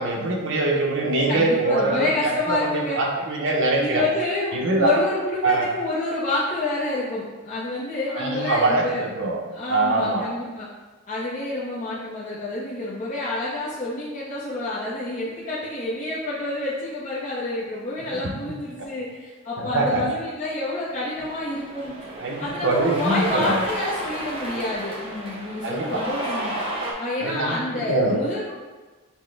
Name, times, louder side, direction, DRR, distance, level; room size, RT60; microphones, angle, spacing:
voice 1, 0.0-4.0 4.5-4.9 5.4-5.7 8.1-9.4 9.7-10.3 18.1-18.3 19.6-20.0 22.2-23.6 25.6-26.0 27.2-28.2, right 2 dB, 55° right, -1 dB, 0.7 m, -23 dB
voice 2, 1.3-3.0 3.8-9.0 9.5-10.7 11.1-22.0 22.4-26.5 27.0-28.5, left 2 dB, 30° left, -8 dB, 0.6 m, -28 dB
Cheering, 20.9-26.9, right 1 dB, 25° right, 0.6 m, -32 dB
6.2 x 2.1 x 3.2 m, 1.3 s
head